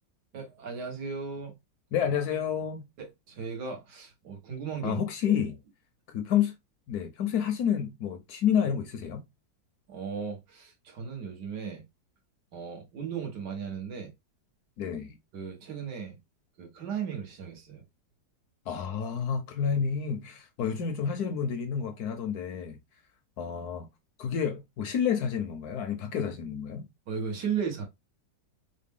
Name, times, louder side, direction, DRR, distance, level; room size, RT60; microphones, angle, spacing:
voice 1, 0.3-1.6 3.0-5.0 5.3-5.4 9.9-11.8 12.5-14.1 15.3-16.2 16.6-17.8 27.1-27.8, right 6 dB, 65° right, 1.7 m, -36 dB
voice 2, 1.9-2.8 4.8-5.6 6.1-6.5 6.9-9.2 14.8-15.2 18.7-22.8 23.4-23.9 24.2-26.9, left 8 dB, 70° left, 1.1 m, -29 dB
4.1 x 2.1 x 3.5 m
omnidirectional pair, 1.9 m